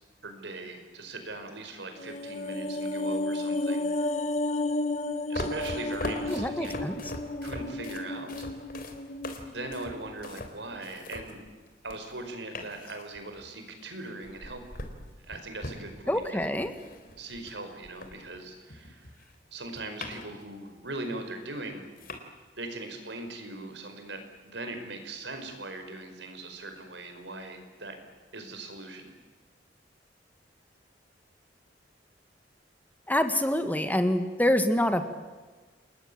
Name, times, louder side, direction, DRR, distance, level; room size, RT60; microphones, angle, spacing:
voice 1, 0.2-3.9 5.3-6.8 7.4-8.5 9.4-11.4 11.8-14.6 15.2-16.5 17.2-19.1 19.5-21.9 22.6-27.9 28.3-29.1, right 2 dB, 80° right, 6 dB, 5.3 m, -40 dB
sound 1, 2.0-10.4 10.7-10.9, left 2 dB, 40° left, 1.4 m, -33 dB
sound 2, 5.3-12.2 12.5-13.5 14.2-18.4 18.7-20.5 20.8-20.9 21.5-21.6 22.0-22.2, left 2 dB, 55° left, 3.8 m, -41 dB
voice 2, 6.3-7.0 16.1-16.7 33.1-35.1, left 1 dB, 10° left, 8 dB, 1.6 m, -26 dB
29.5 x 20.5 x 8.8 m, 1.4 s
head